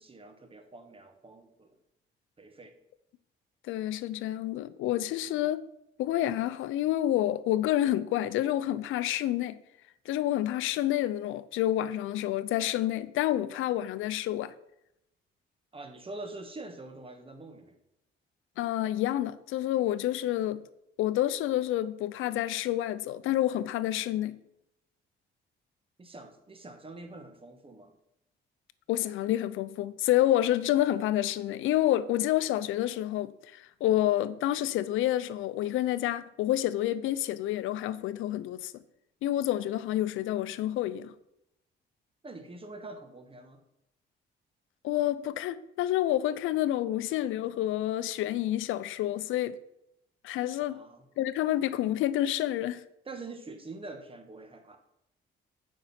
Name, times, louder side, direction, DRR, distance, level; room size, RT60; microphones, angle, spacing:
voice 1, 0.0-1.8 2.4-2.7 15.7-17.7 26.0-27.9 42.2-43.6 50.6-51.1 53.0-54.8, right 2 dB, 25° right, 1.4 m, -45 dB
voice 2, 3.7-5.6 6.0-9.6 10.1-14.5 18.6-20.7 21.0-24.4 28.9-38.8 39.2-41.1 44.8-49.6 50.2-50.8 51.2-52.8, left 13 dB, 85° left, 0.5 m, -28 dB
7.2 x 5.3 x 5.7 m
cardioid pair, 90°, 20 cm